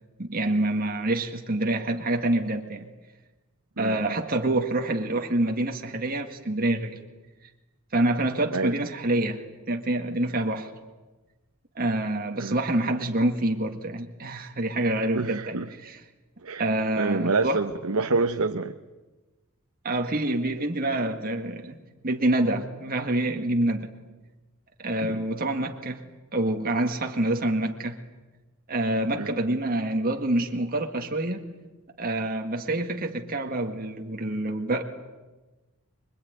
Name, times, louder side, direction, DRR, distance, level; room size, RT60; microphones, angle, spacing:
voice 1, 0.2-2.9 3.8-7.0 7.9-10.7 11.8-16.0 16.6-17.7 19.8-23.9 24.8-26.0 26.3-28.0 28.7-31.4 32.0-34.8, right 1 dB, 40° right, 3 dB, 1.9 m, -27 dB
voice 2, 15.1-15.7 16.4-16.6 17.0-18.7 25.1-25.2 29.2-29.3, right 3 dB, 70° right, 7 dB, 1.0 m, -27 dB
25.5 x 22.5 x 9.5 m, 1.2 s
head